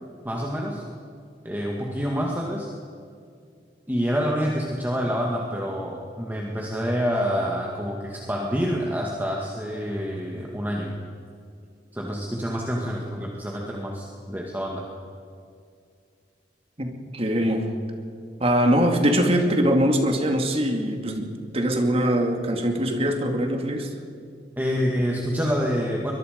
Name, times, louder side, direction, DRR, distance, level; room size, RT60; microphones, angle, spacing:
voice 1, 0.2-0.8 1.4-2.7 3.9-10.9 11.9-14.9 24.6-26.1, equal, 10° right, -1 dB, 2.0 m, -27 dB
voice 2, 16.8-17.7 18.4-23.9, equal, 35° right, 4 dB, 2.4 m, -22 dB
23.0 x 22.0 x 5.3 m, 2.3 s
head